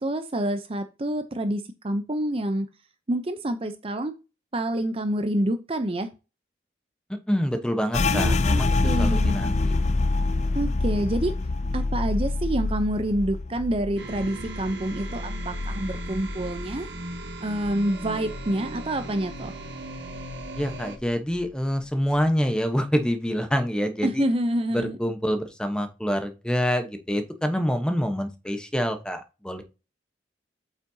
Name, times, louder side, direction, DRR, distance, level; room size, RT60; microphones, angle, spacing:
voice 1, 0.0-2.7 3.1-4.1 4.5-6.1 8.1-9.4 10.5-11.3 11.7-16.9 17.4-19.5 24.0-25.0, right 1 dB, 30° right, 9 dB, 0.6 m, -27 dB
voice 2, 7.3-9.8 20.5-24.2 24.7-29.6, equal, 5° left, 7 dB, 1.0 m, -26 dB
sound 1, 7.9-17.3 17.6-18.9 19.2-19.7 20.1-20.7, left 3 dB, 40° left, 0.4 m, -26 dB
sound 2, 14.0-21.0, right 2 dB, 75° right, 1.4 m, -38 dB
8.4 x 5.6 x 2.7 m, 0.30 s
head